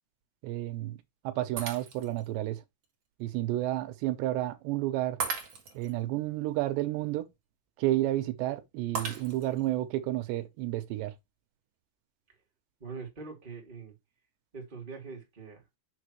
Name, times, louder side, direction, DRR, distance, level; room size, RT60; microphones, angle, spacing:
voice 1, 0.4-1.0 1.2-2.6 3.2-5.2 5.7-7.3 7.8-11.1, right 15 dB, 85° right, 3.0 m, -31 dB
Shatter, 1.6-2.3 2.8-2.9 5.2-5.9 8.9-9.7, right 5 dB, 45° right, 2.5 m, -36 dB
voice 2, 12.8-13.9 14.5-15.6, right 4 dB, 15° right, 2.4 m, -43 dB
7.1 x 6.3 x 3.1 m
omnidirectional pair, 4.9 m